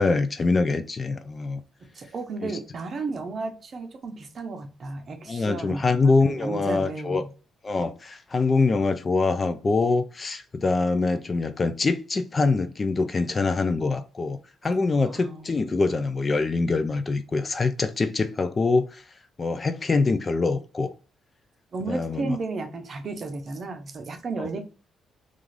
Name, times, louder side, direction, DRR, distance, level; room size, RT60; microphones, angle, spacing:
voice 1, 0.0-1.6 2.4-2.6 5.3-7.2 7.6-14.4 14.6-19.0 19.4-20.9 21.9-22.4 24.4-24.5, left 3 dB, 35° left, 0.3 m, -24 dB
voice 2, 1.9-7.3 15.0-15.7 21.7-24.6, right 3 dB, 45° right, 0.6 m, -33 dB
2.4 x 2.4 x 3.2 m
cardioid pair, 90°, 0 cm